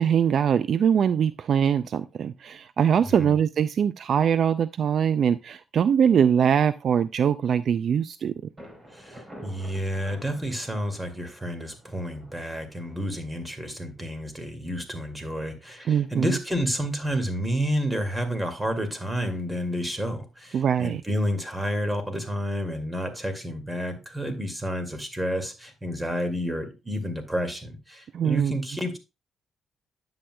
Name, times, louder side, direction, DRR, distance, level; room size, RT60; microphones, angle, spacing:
voice 1, 0.0-8.3 15.9-16.4 20.5-21.0 28.1-28.5, right 8 dB, 60° right, 0.3 m, -22 dB
voice 2, 3.0-3.4 8.9-29.0, equal, 10° right, 2.1 m, -30 dB
Thunder, 8.6-14.2, equal, 30° right, 3.7 m, -49 dB
9.9 x 7.9 x 2.2 m
cardioid pair, 90°, 0 cm